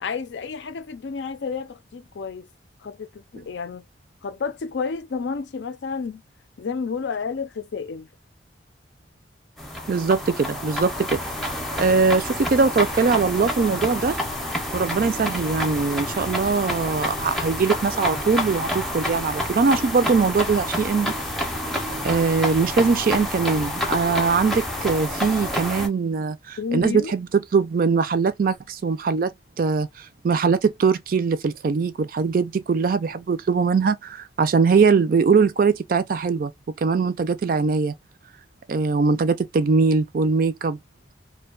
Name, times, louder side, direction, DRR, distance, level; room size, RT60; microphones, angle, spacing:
voice 1, 0.0-2.5 2.8-3.8 4.2-6.2 6.6-8.1 26.6-27.1, left 5 dB, 75° left, 0.4 m, -30 dB
sound 1, 9.6-25.9, left 1 dB, ahead, 0.5 m, -28 dB
voice 2, 9.9-11.2 11.8-14.2 14.7-21.1 22.0-29.3 29.6-36.5 36.8-37.9 38.7-40.8, right 5 dB, 50° right, 0.4 m, -21 dB
2.6 x 2.2 x 2.2 m
head